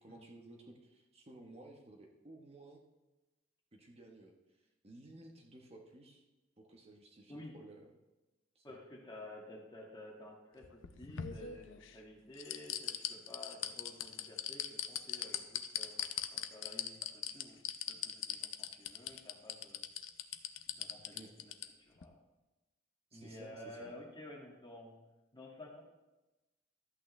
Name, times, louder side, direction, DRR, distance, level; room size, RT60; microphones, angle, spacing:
voice 1, 0.0-2.8 3.7-4.3 4.8-6.2 6.6-7.9 8.5-8.7 21.1-21.4 23.1-24.0, right 2 dB, 35° right, 1 dB, 1.1 m, -55 dB
voice 2, 8.6-16.0 16.3-19.8 20.7-21.5 21.8-22.2 23.1-25.0 25.3-25.8, left 1 dB, 25° left, -2 dB, 2.0 m, -52 dB
sound 1, 10.6-11.9 12.4-21.7 22.0-22.1, left 10 dB, 90° left, 0.6 m, -39 dB
13.0 x 8.5 x 3.2 m, 1.1 s
head